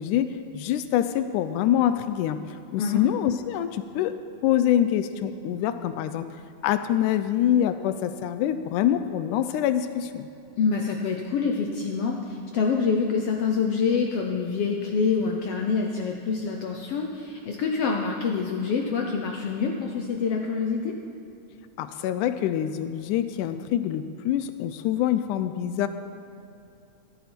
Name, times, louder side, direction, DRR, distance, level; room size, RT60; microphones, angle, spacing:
voice 1, 0.0-4.2 4.4-6.3 6.6-10.3 21.8-25.9, left 11 dB, 85° left, 11 dB, 2.1 m, -25 dB
voice 2, 10.6-20.9, left 5 dB, 70° left, 1 dB, 1.4 m, -26 dB
15.5 x 12.5 x 4.4 m, 2.7 s
omnidirectional pair, 3.6 m